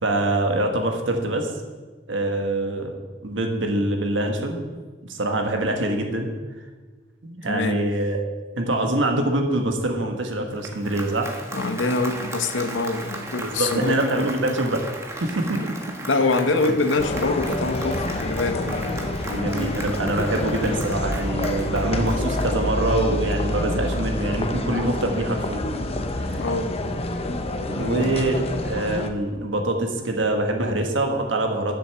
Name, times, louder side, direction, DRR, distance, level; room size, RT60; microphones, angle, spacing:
voice 1, 0.0-1.5 2.1-2.9 3.2-4.6 5.0-6.3 7.2-8.2 8.5-11.3 13.4-14.8 15.2-15.8 18.6-18.9 19.2-25.7 26.2-26.4 27.7-31.8, right 1 dB, 90° right, 3 dB, 1.4 m, -24 dB
voice 2, 7.5-7.8 11.5-14.3 16.1-18.6 26.3-26.7 27.7-28.1, left 3 dB, 85° left, 8 dB, 0.8 m, -24 dB
Applause, 10.4-22.9, right 2 dB, 15° right, 1.2 m, -37 dB
sound 1, 17.0-29.1, left 1 dB, 35° left, 0.7 m, -27 dB
7.8 x 7.0 x 6.8 m, 1.4 s
head